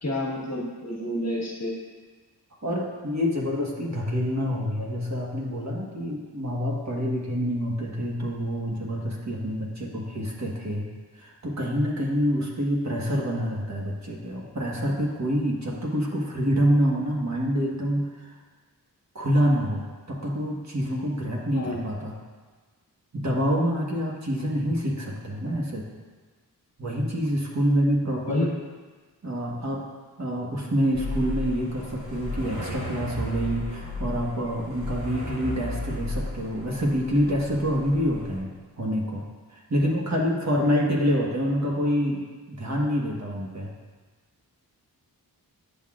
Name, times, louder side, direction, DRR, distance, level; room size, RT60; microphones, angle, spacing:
voice 1, 0.0-1.7 21.5-21.8 28.2-28.5, left 1 dB, 40° left, -3 dB, 1.5 m, -29 dB
voice 2, 2.6-10.9 11.2-18.3 19.1-22.2 23.1-25.9 26.8-28.5 29.2-29.8 30.2-38.5 38.8-43.7, equal, 45° right, -3 dB, 1.4 m, -27 dB
sound 1, 30.9-38.4, left 1 dB, 70° right, 1.8 m, -34 dB
10.5 x 5.9 x 2.5 m, 1.4 s
wide cardioid pair, 60°, 39 cm